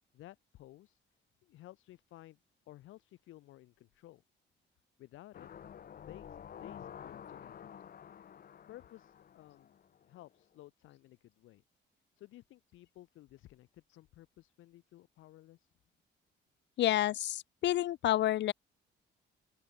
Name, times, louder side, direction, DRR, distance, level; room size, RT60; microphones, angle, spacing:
voice 1, 0.1-1.0 1.4-2.4 2.7-4.2 5.0-5.5 6.0-7.7 8.7-9.8 10.0-11.6 12.2-15.7, left 15 dB, 85° left, 2.0 m, -55 dB
sound 1, 5.3-10.2 10.6-10.7, left 8 dB, 50° left, 0.9 m, -50 dB
voice 2, 16.8-18.5, left 13 dB, 65° left, 0.5 m, -29 dB
open air
cardioid pair, 90°, 20 cm